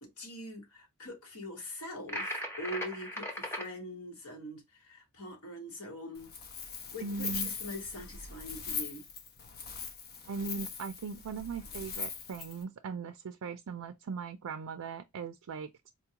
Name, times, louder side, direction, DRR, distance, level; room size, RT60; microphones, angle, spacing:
voice 1, 0.0-6.3 6.9-9.0, left 1 dB, 80° left, 1.4 m, -43 dB
sound 1, 2.1-3.7, equal, 10° left, 0.8 m, -37 dB
Wind, 6.1-12.6, left 5 dB, 45° left, 0.7 m, -41 dB
voice 2, 7.0-7.5 10.3-15.9, right 5 dB, 85° right, 0.4 m, -39 dB
4.3 x 2.3 x 2.8 m
head